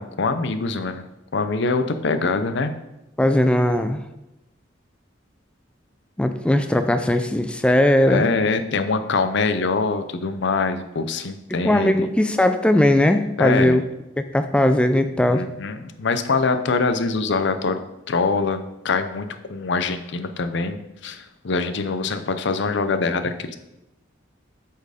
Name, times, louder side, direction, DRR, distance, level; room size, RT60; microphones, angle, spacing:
voice 1, 0.0-2.7 8.1-12.1 13.4-13.8 15.3-17.8 18.1-23.5, left 4 dB, 65° left, 10 dB, 0.6 m, -24 dB
voice 2, 3.2-4.0 6.2-8.3 11.6-13.8 14.2-15.4, left 1 dB, 5° left, 8 dB, 0.3 m, -19 dB
8.2 x 4.5 x 5.0 m, 0.93 s
head